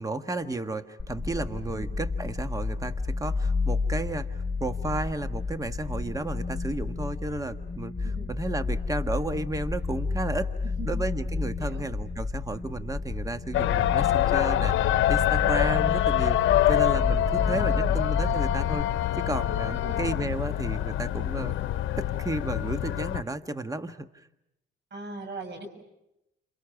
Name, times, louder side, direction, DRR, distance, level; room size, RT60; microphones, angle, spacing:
voice 1, 0.0-10.5 10.8-16.4 16.7-18.9 19.2-21.5 22.0-24.2, right 2 dB, 15° right, 9 dB, 1.4 m, -33 dB
ambient spacecraft hum, 1.0-18.8, left 4 dB, 10° left, 3.0 m, -31 dB
voice 2, 10.6-10.9 11.6-11.9 17.3-18.1 19.7-20.0 24.9-25.7, right 3 dB, 60° right, 7 dB, 6.9 m, -41 dB
istanbul adhan, 13.5-23.2, left 13 dB, 80° left, 0.9 m, -25 dB
30.0 x 27.5 x 5.9 m, 0.86 s
cardioid pair, 90°, 20 cm